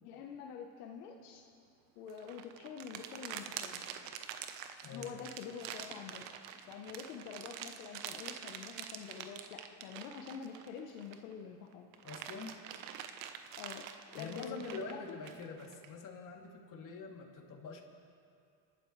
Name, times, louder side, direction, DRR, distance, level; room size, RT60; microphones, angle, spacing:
voice 1, 0.0-1.4 1.9-3.8 4.9-6.3 6.7-11.9 13.5-13.8 14.1-15.2, left 7 dB, 85° left, 2 dB, 1.2 m, -46 dB
sound 1, 2.1-11.3 11.7-15.9, right 9 dB, 85° right, 1.2 m, -46 dB
voice 2, 4.8-5.2 11.9-12.5 14.2-17.8, left 4 dB, 40° left, -1 dB, 3.0 m, -45 dB
29.0 x 12.5 x 3.3 m, 2.5 s
supercardioid pair, 95°, 48 cm